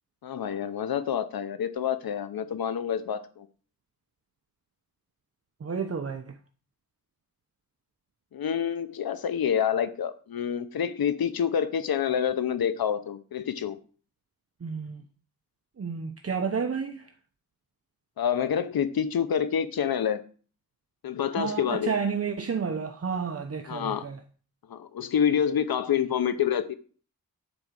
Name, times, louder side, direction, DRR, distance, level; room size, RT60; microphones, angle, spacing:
voice 1, 0.2-3.5 8.3-13.8 18.2-20.2 21.0-21.9 23.7-24.1 24.7-26.8, left 8 dB, 85° left, 0.8 m, -27 dB
voice 2, 5.6-6.4 14.6-15.0 15.8-17.1 21.3-24.2, right 6 dB, 40° right, 0.9 m, -31 dB
9.7 x 5.0 x 7.4 m
wide cardioid pair, 85°, 35 cm